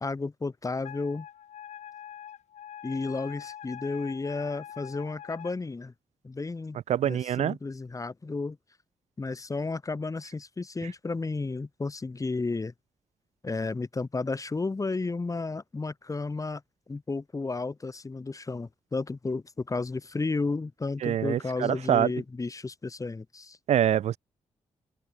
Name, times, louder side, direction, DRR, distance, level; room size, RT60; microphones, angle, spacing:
voice 1, 0.0-1.3 2.8-5.9 6.2-6.8 7.0-8.6 9.2-12.7 13.4-16.6 16.9-23.6, left 3 dB, 25° left, 1.1 m, -32 dB
Wind instrument woodwind instrument, 0.8-5.6, left 10 dB, 75° left, 1.7 m, -44 dB
voice 2, 6.9-7.6 21.0-22.1 23.7-24.2, right 10 dB, 65° right, 0.4 m, -25 dB
open air
supercardioid pair, 55°, 12 cm